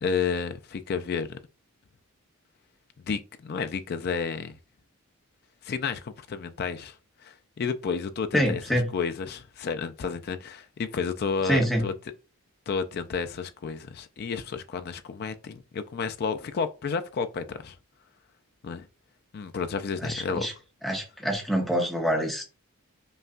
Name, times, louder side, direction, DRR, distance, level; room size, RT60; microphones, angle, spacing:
voice 1, 0.0-1.4 3.0-4.6 5.6-6.9 7.2-11.9 12.7-17.7 18.6-18.8 19.3-20.5, left 5 dB, 45° left, 0.4 m, -31 dB
voice 2, 8.3-8.9 11.4-11.8 20.0-20.5 20.8-22.4, equal, ahead, 0.7 m, -26 dB
5.3 x 2.2 x 2.4 m
head